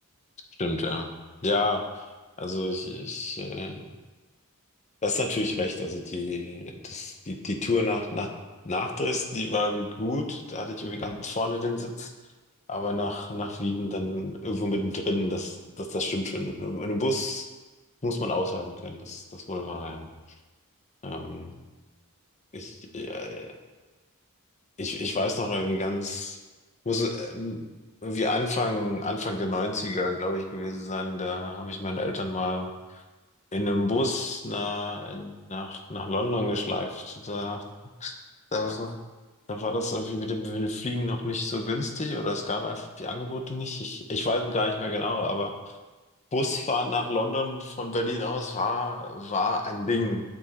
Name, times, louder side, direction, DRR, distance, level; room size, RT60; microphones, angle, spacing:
voice 1, 0.6-1.1 1.4-2.0 2.4-3.8 5.0-8.3 8.6-12.1 12.7-17.5 18.0-20.1 21.0-21.5 22.5-23.6 24.8-26.4 26.8-27.6 28.0-32.7 33.5-37.6 38.0-38.1 38.5-39.0 39.5-45.5 46.3-50.2, left 2 dB, 30° left, 4 dB, 0.8 m, -29 dB
7.6 x 6.2 x 4.3 m, 1.2 s
head